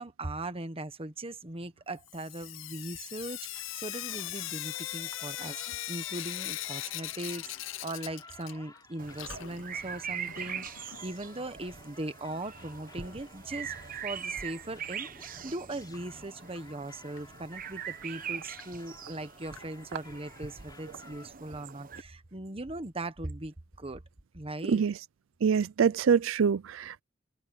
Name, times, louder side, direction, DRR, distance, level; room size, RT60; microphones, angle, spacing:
voice 1, 0.0-13.7 14.0-24.0 24.3-24.8, right 2 dB, 30° right, 1.3 m, -39 dB
Sink (filling or washing) / Drip, 2.1-8.8 9.1-11.0 12.2-12.3 12.6-12.7 12.9-13.0 15.9-16.0 16.5-16.6 17.2-17.3 17.9-18.0 18.6-18.7 19.6-19.7, left 14 dB, 70° left, 0.5 m, -40 dB
sound 1, 3.5-21.3, left 3 dB, 20° left, 7.0 m, -55 dB
sound 2, 9.0-22.0, right 7 dB, 45° right, 1.0 m, -42 dB
voice 2, 24.6-25.0 25.4-27.0, right 6 dB, 85° right, 0.4 m, -25 dB
head